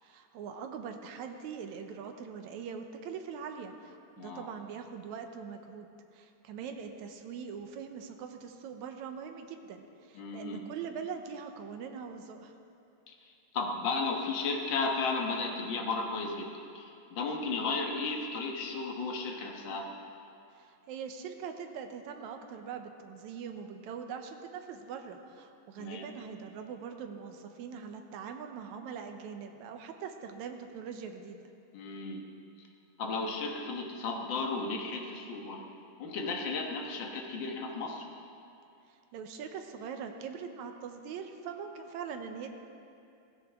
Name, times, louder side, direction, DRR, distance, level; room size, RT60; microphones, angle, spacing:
voice 1, 0.0-12.5 20.5-31.4 38.9-42.5, right 6 dB, 75° right, 5 dB, 1.9 m, -42 dB
voice 2, 10.1-10.6 13.5-16.5 16.7-19.9 25.8-26.0 31.7-32.3 33.0-35.6 36.0-38.1, left 3 dB, 60° left, 0 dB, 1.2 m, -34 dB
16.5 x 14.5 x 3.6 m, 2.6 s
omnidirectional pair, 3.8 m